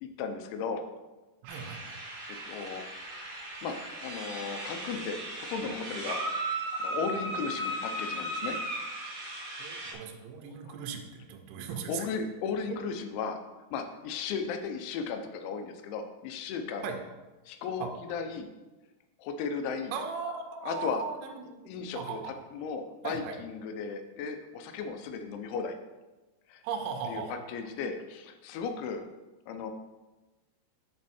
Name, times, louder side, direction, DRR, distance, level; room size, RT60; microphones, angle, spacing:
voice 1, 0.0-0.8 2.0-2.2 2.5-2.8 3.6-6.2 6.8-8.6 10.4-10.7 11.9-13.4 13.7-16.9 17.5-18.5 19.2-19.9 20.6-21.0 21.4-25.8 26.5-26.6 27.1-29.0 29.5-29.7, left 5 dB, 80° left, 6 dB, 2.9 m, -36 dB
voice 2, 1.4-2.0 9.6-12.1 16.8-17.0 17.8-17.9 19.9-22.3 23.0-23.4 26.6-27.4, right 6 dB, 85° right, 3 dB, 3.2 m, -38 dB
sound 1, 1.5-9.9, right 1 dB, 60° right, 2.8 m, -36 dB
9.6 x 4.4 x 4.2 m, 1.1 s
omnidirectional pair, 5.5 m